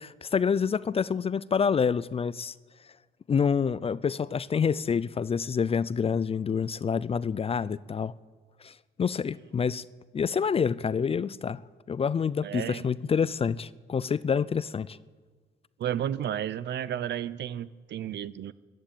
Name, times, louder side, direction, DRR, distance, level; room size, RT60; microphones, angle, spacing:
voice 1, 0.0-2.5 3.3-8.1 8.6-8.7 9.0-9.8 10.1-11.6 11.9-15.0, left 6 dB, 30° left, 0.4 m, -27 dB
voice 2, 12.4-12.9 15.8-18.5, right 10 dB, 60° right, 0.6 m, -32 dB
14.0 x 11.0 x 9.1 m
cardioid pair, 90°, 20 cm